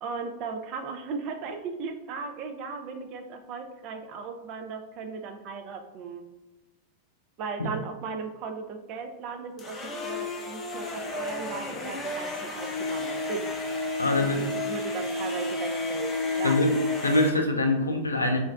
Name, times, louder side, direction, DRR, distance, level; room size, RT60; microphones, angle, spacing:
voice 1, 0.0-6.3 7.4-13.5 14.2-16.6, right 5 dB, 40° right, 6 dB, 0.3 m, -37 dB
sound 1, 9.6-17.3, left 2 dB, 20° left, 0.5 m, -31 dB
voice 2, 14.0-14.6 16.4-16.7 17.0-18.4, left 2 dB, 80° left, 4 dB, 0.4 m, -24 dB
3.8 x 2.0 x 2.3 m, 0.99 s
figure-of-eight pair, 90°, 0 cm